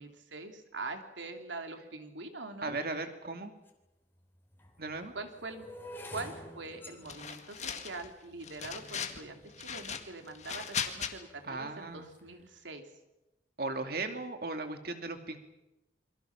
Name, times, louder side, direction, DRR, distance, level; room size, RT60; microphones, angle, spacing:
voice 1, 0.0-2.8 5.1-5.6 6.1-12.8, right 3 dB, 85° right, 5 dB, 3.0 m, -43 dB
voice 2, 2.6-3.5 4.8-5.1 11.4-12.1 13.6-15.4, right 3 dB, 55° right, 6 dB, 2.5 m, -37 dB
sound 1, 3.7-3.8 4.5-10.7 11.3-11.7 12.0-12.3, equal, 10° left, 3.3 m, -50 dB
sound 2, 7.1-8.1 8.4-9.2 9.6-11.1, left 7 dB, 40° left, 1.9 m, -38 dB
28.5 x 23.5 x 6.0 m, 0.99 s
head